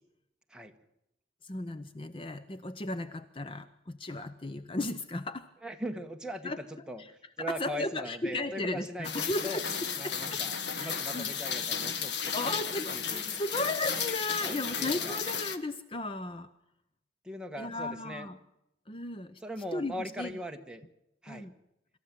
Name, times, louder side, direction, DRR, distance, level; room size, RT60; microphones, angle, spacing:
voice 1, 1.4-5.5 6.4-6.6 7.4-10.4 10.8-11.3 12.3-16.5 17.6-18.4 18.9-19.4 19.7-20.3 21.3-21.5, left 2 dB, 30° left, 12 dB, 0.7 m, -35 dB
voice 2, 5.6-9.6 10.0-12.6 12.9-13.4 14.4-15.2 17.2-18.3 19.4-20.8 21.2-21.5, equal, 5° right, 3 dB, 1.4 m, -40 dB
Rain, 9.0-15.6, left 7 dB, 70° left, 1.3 m, -34 dB
26.0 x 14.0 x 7.5 m, 0.87 s
head